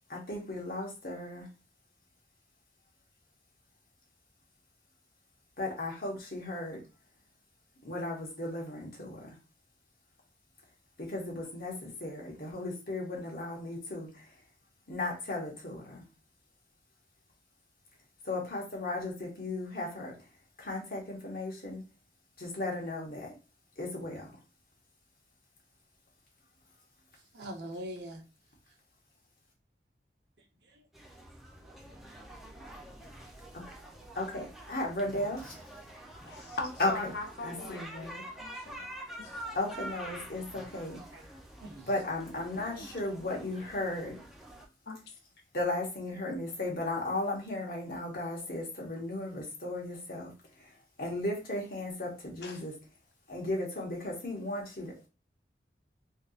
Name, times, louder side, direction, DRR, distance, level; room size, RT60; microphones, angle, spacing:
voice 1, 0.1-1.5 5.6-6.8 7.8-9.4 11.0-14.3 14.9-16.0 18.2-20.1 20.6-21.8 22.4-23.3 23.8-24.3 33.5-33.6 34.1-35.5 36.8-37.1 37.4-38.2 39.5-41.0 41.9-44.1 45.5-50.3 50.6-50.7 51.0-52.7 53.3-55.1, left 2 dB, 55° left, 1.2 m, -35 dB
voice 2, 27.1-28.2 28.7-28.8 30.4-30.9 31.6-31.7 41.1-41.3 41.6-41.9 42.8-42.9, equal, 80° right, 0.9 m, -44 dB
sound 1, 30.9-44.6, right 1 dB, ahead, 0.5 m, -47 dB
voice 3, 36.3-38.9 39.2-39.4 44.9-45.0 52.4-52.6, left 3 dB, 70° left, 0.7 m, -40 dB
3.4 x 2.7 x 2.4 m
head